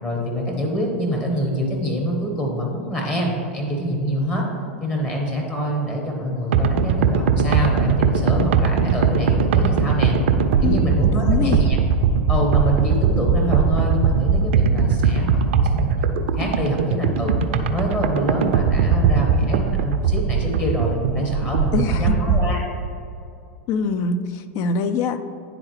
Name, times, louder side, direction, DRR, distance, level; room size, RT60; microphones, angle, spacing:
voice 1, 0.0-4.4 4.8-10.1 10.6-11.8 12.3-17.3 17.7-22.6, equal, 25° left, -1 dB, 1.2 m, -25 dB
sound 1, 6.5-22.5, right 5 dB, 65° right, 0.4 m, -20 dB
voice 2, 10.6-11.7 21.7-22.4 23.7-25.2, left 4 dB, 45° left, 10 dB, 0.4 m, -24 dB
9.8 x 3.9 x 3.2 m, 2.5 s
hypercardioid pair, 95°, 7 cm